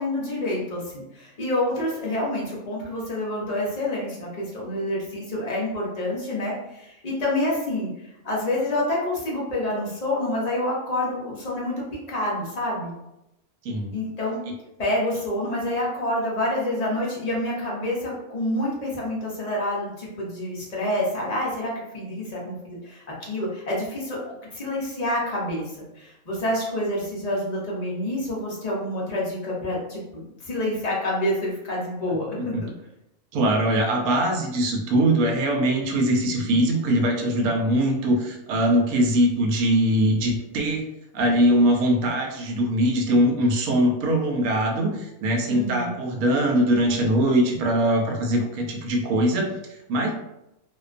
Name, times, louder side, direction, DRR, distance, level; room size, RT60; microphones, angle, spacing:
voice 1, 0.0-7.9 8.2-11.7 12.1-12.9 13.9-14.4 14.8-25.6 25.9-32.7 45.5-45.9, left 1 dB, 45° left, -5 dB, 0.5 m, -27 dB
voice 2, 33.3-40.9 41.1-50.1, right 1 dB, 85° right, 2 dB, 1.0 m, -22 dB
2.4 x 2.2 x 2.4 m, 0.87 s
omnidirectional pair, 1.5 m